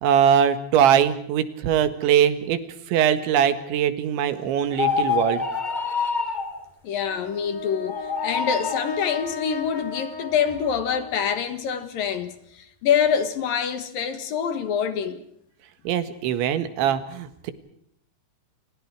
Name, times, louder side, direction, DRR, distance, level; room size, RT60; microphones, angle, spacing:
voice 1, 0.0-2.6 2.9-5.5 15.9-17.5, right 9 dB, 90° right, 4.0 m, -21 dB
sound 1, 4.7-6.5 7.8-8.9, left 5 dB, 15° left, 1.7 m, -26 dB
voice 2, 6.8-15.2, left 7 dB, 60° left, 3.0 m, -26 dB
Brass instrument, 7.0-11.5, left 6 dB, 40° left, 3.3 m, -36 dB
29.5 x 29.0 x 4.8 m
omnidirectional pair, 5.1 m